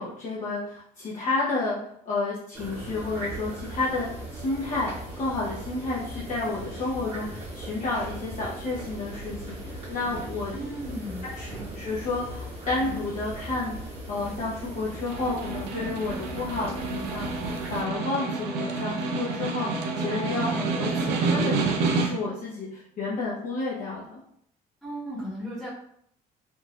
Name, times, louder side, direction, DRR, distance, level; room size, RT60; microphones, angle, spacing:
voice 1, 0.0-1.8 2.0-10.5 11.4-13.8 14.1-24.2, left 3 dB, 45° left, -7 dB, 0.9 m, -31 dB
sound 1, 2.5-17.8, right 1 dB, 35° right, 1.4 m, -39 dB
sound 2, 10.0-10.6 11.4-12.0 12.8-13.3 14.2-14.7, right 2 dB, 50° right, 0.9 m, -43 dB
voice 2, 10.5-11.3 24.8-25.7, equal, ahead, -11 dB, 1.2 m, -35 dB
Snare drum, 14.9-22.4, right 3 dB, 85° right, 0.6 m, -29 dB
3.8 x 2.5 x 2.4 m, 0.68 s
cardioid pair, 110°, 17 cm